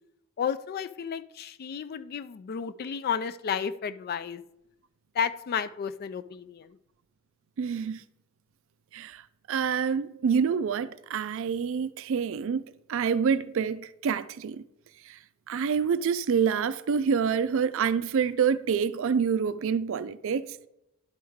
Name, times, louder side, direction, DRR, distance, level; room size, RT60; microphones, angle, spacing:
voice 1, 0.4-4.4 5.1-6.8, left 7 dB, 45° left, 0.3 m, -32 dB
voice 2, 7.6-8.0 8.9-9.2 9.5-14.6 15.5-20.4, right 6 dB, 65° right, 0.4 m, -27 dB
11.0 x 4.7 x 3.5 m
head